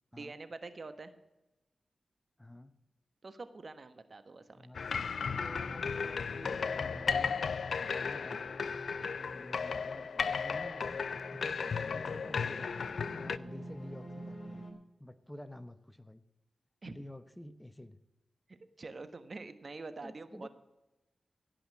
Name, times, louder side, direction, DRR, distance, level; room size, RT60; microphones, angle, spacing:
voice 1, 0.1-1.1 3.2-4.7 16.8-17.0 18.5-20.5, right 3 dB, 55° right, 11 dB, 1.3 m, -46 dB
voice 2, 2.4-2.8 4.5-4.9 5.5-7.4 7.8-8.8 9.3-11.0 11.3-12.7 13.2-14.7 15.0-16.2 16.8-18.0 20.0-20.5, left 1 dB, 10° left, 13 dB, 0.9 m, -50 dB
sound 1, 4.7-13.4, left 5 dB, 75° left, 0.4 m, -35 dB
sound 2, 5.4-14.7, equal, 50° left, 3.4 m, -49 dB
17.0 x 5.7 x 8.6 m, 0.98 s
cardioid pair, 40°, 0 cm